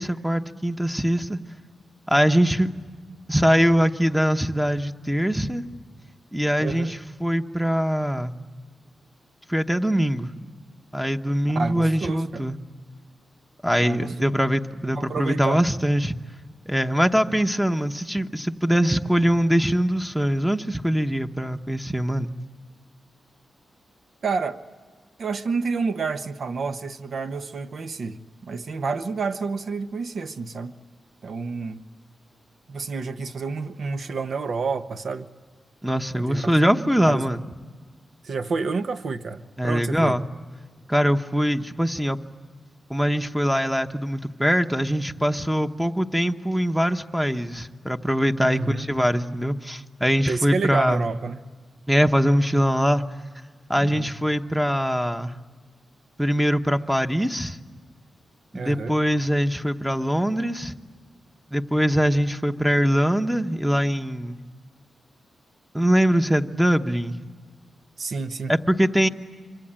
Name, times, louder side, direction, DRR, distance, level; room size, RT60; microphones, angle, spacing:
voice 1, 0.0-1.4 2.1-2.7 3.3-5.6 6.3-8.3 9.5-10.3 10.9-12.5 13.6-16.2 16.7-22.3 35.8-37.4 39.6-40.2 40.9-42.2 42.9-51.0 51.9-53.0 53.7-55.3 56.2-57.6 58.5-60.8 61.5-64.4 65.7-67.2 68.5-69.1, equal, ahead, 1.0 m, -22 dB
voice 2, 6.6-7.0 11.5-12.4 13.8-14.2 14.9-15.6 24.2-24.6 25.2-30.7 31.2-31.8 32.7-35.3 36.2-36.6 37.1-37.3 38.2-40.2 48.4-48.9 50.3-51.4 53.7-54.1 58.5-58.9 68.0-68.5, right 4 dB, 65° right, 1.1 m, -29 dB
26.0 x 25.0 x 8.8 m
cardioid pair, 90°, 0 cm